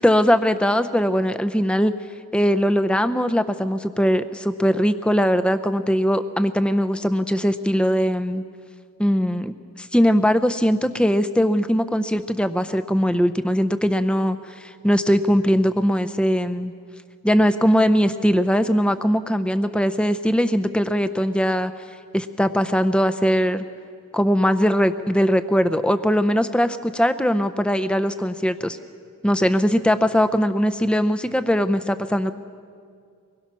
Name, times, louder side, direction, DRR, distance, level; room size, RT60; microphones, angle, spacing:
voice 1, 0.0-1.9 2.3-8.4 9.0-16.7 17.2-21.7 22.1-23.6 24.1-28.8 29.2-32.3, equal, 5° left, 10 dB, 0.6 m, -20 dB
24.0 x 21.0 x 6.2 m, 2.2 s
head